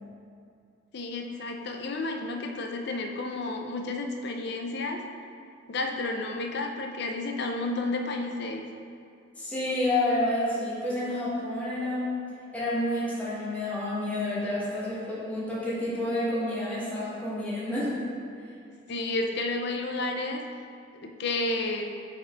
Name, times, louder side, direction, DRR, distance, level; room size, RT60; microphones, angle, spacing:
voice 1, 0.9-5.0 5.7-8.7 18.9-20.4 20.9-21.8, left 2 dB, 60° left, 3 dB, 0.6 m, -31 dB
voice 2, 9.4-12.1 12.5-18.0, left 1 dB, 10° left, -9 dB, 1.4 m, -29 dB
5.2 x 4.2 x 4.5 m, 2.4 s
head